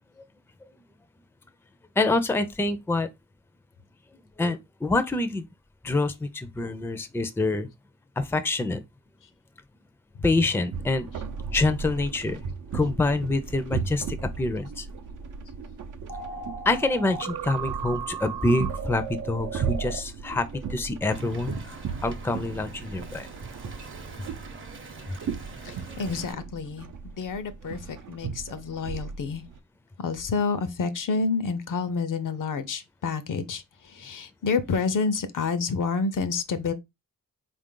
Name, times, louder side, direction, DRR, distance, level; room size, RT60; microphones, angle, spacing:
voice 1, 2.0-3.1 4.4-5.5 5.8-7.7 8.2-8.8 10.2-11.1 11.5-12.4 12.7-14.9 16.7-21.5 22.0-23.3, left 2 dB, 5° left, 0.5 m, -26 dB
sound 1, 10.7-29.6, right 5 dB, 65° right, 0.6 m, -36 dB
sound 2, 16.1-20.0, right 7 dB, 85° right, 0.9 m, -35 dB
Wind, 21.0-26.3, right 3 dB, 35° right, 0.8 m, -42 dB
voice 2, 25.6-29.4 30.0-33.6 33.9-36.7, left 4 dB, 65° left, 0.7 m, -29 dB
4.0 x 2.5 x 3.7 m
cardioid pair, 75°, 34 cm